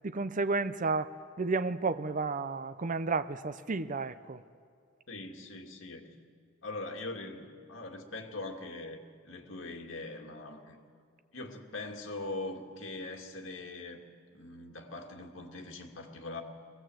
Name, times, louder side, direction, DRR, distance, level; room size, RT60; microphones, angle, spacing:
voice 1, 0.0-4.4, right 3 dB, 40° right, 11 dB, 0.6 m, -32 dB
voice 2, 5.1-6.2 6.6-10.8 11.3-14.0 14.3-16.4, left 2 dB, 70° left, 2 dB, 2.2 m, -42 dB
21.5 x 17.5 x 7.7 m, 2.3 s
head